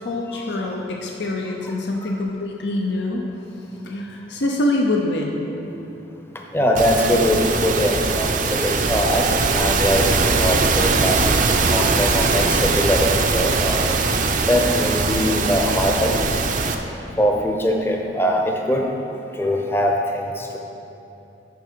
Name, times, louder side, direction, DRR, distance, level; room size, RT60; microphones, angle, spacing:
voice 1, 0.0-3.2 3.8-5.4, left 1 dB, 90° left, 0 dB, 0.7 m, -24 dB
voice 2, 6.5-9.2 9.5-11.2 11.7-14.0 14.5-16.4 17.2-18.9 19.4-20.6, equal, 15° left, 1 dB, 0.6 m, -22 dB
sound 1, 6.8-16.8, right 4 dB, 45° right, 0.5 m, -20 dB
9.2 x 5.9 x 4.6 m, 2.9 s
head